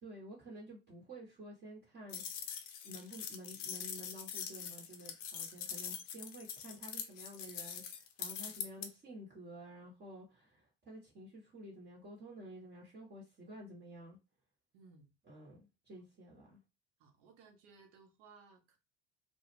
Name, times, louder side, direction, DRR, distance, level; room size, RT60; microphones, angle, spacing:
voice 1, 0.0-2.5 2.8-14.2 15.3-16.6, right 1 dB, 30° right, 0.9 m, -51 dB
sound 1, 2.1-8.9, left 8 dB, 55° left, 0.6 m, -43 dB
voice 2, 14.7-15.1 16.0-16.1 17.0-18.8, right 4 dB, 60° right, 0.8 m, -61 dB
2.2 x 2.1 x 3.1 m
figure-of-eight pair, 60°, 35 cm